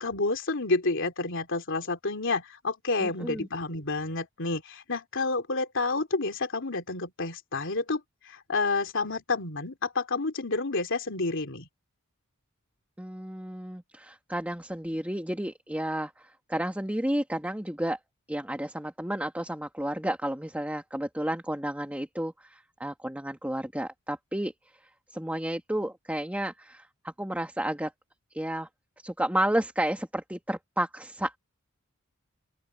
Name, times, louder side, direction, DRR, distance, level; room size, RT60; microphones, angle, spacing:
voice 1, 0.0-11.7, left 3 dB, 60° left, 3.3 m, -29 dB
voice 2, 3.0-3.5 13.0-18.0 18.3-24.5 25.1-27.9 28.3-28.7 29.0-31.4, right 1 dB, 5° right, 2.3 m, -31 dB
open air
head